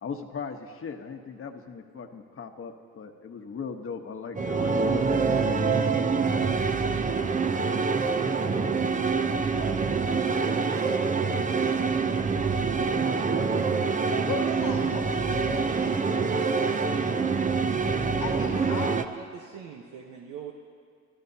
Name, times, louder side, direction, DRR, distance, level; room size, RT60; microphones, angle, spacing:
voice 1, 0.0-5.9, left 5 dB, 45° left, 5 dB, 1.2 m, -38 dB
sound 1, 4.4-19.0, right 5 dB, 25° right, 0.7 m, -25 dB
voice 2, 9.5-10.1 11.0-12.7 13.0-13.8 15.9-17.0 18.3-20.5, right 7 dB, 85° right, 0 dB, 1.1 m, -42 dB
voice 3, 14.1-15.6 18.2-18.9, left 5 dB, 85° left, 0 dB, 2.0 m, -36 dB
29.5 x 13.0 x 2.8 m, 2.3 s
cardioid pair, 90°, 30 cm